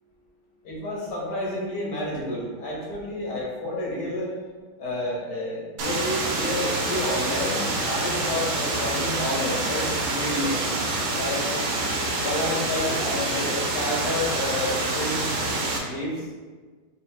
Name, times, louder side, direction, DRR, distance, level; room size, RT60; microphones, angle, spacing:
voice 1, 0.6-4.3 4.8-10.6 11.1-11.5 12.2-15.2 15.8-16.2, left 1 dB, 60° left, -4 dB, 1.4 m, -30 dB
sound 1, 5.8-15.8, right 2 dB, 70° right, 1.1 m, -27 dB
4.1 x 3.6 x 2.2 m, 1.4 s
omnidirectional pair, 1.9 m